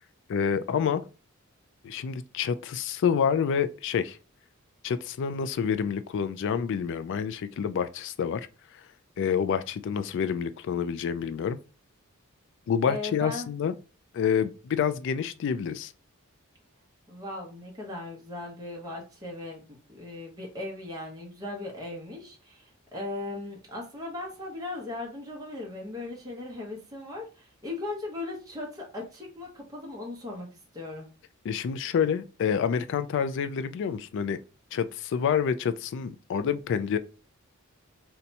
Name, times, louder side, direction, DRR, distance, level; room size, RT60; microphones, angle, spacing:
voice 1, 0.3-1.0 1.8-4.2 4.8-8.5 9.2-11.6 12.7-13.7 14.1-15.9 31.4-34.4 34.7-37.0, left 7 dB, 60° left, 0.3 m, -28 dB
voice 2, 12.9-13.5 17.1-19.6 19.9-30.5 30.7-31.1, left 2 dB, 20° right, 0.8 m, -38 dB
2.7 x 2.2 x 4.0 m
head